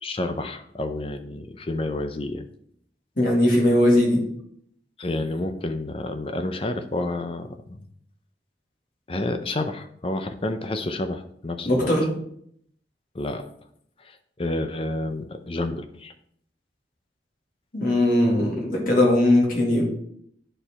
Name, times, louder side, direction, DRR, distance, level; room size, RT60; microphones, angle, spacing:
voice 1, 0.0-2.5 5.0-7.8 9.1-11.9 13.1-13.5 14.0-16.1, left 2 dB, 30° left, 8 dB, 0.6 m, -30 dB
voice 2, 3.2-4.2 11.7-12.1 17.7-19.8, left 1 dB, 50° left, -2 dB, 2.3 m, -19 dB
9.1 x 4.6 x 4.3 m, 0.68 s
head